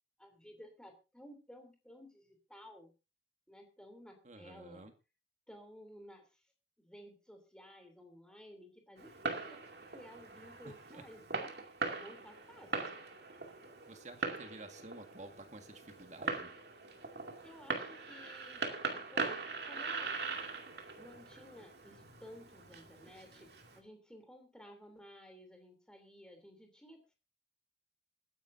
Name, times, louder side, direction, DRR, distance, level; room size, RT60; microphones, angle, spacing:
voice 1, 0.2-2.9 3.5-4.9 5.5-6.2 6.8-9.6 9.9-11.5 12.0-12.9 17.4-19.4 19.7-20.2 21.0-27.1, equal, 5° left, 4 dB, 3.2 m, -55 dB
voice 2, 4.2-4.9 10.6-11.0 13.9-16.5, right 2 dB, 40° right, 6 dB, 1.8 m, -51 dB
Fireworks, 9.0-23.8, right 4 dB, 60° right, 2.5 m, -41 dB
27.0 x 10.5 x 2.7 m, 0.29 s
head